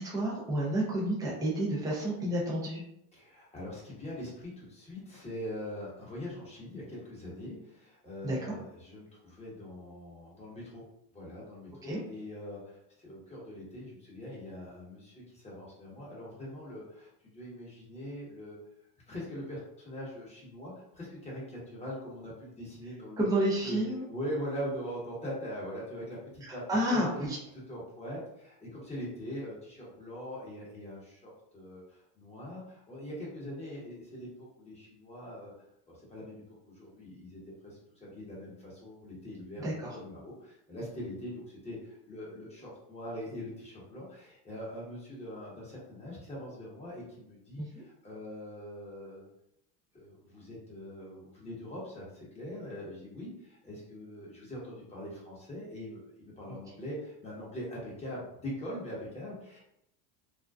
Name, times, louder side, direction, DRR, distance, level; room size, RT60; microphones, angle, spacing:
voice 1, 0.0-2.8 8.2-8.5 11.8-12.0 23.2-24.0 26.4-27.4 39.6-40.0 47.6-47.8, right 1 dB, 10° right, -4 dB, 0.5 m, -30 dB
voice 2, 3.1-10.8 11.1-18.6 19.1-23.3 23.6-23.8 24.1-27.0 27.7-35.5 35.9-49.3 49.9-59.6, equal, 15° left, -6 dB, 1.0 m, -42 dB
2.5 x 2.1 x 2.3 m, 0.78 s
supercardioid pair, 115°, 50 cm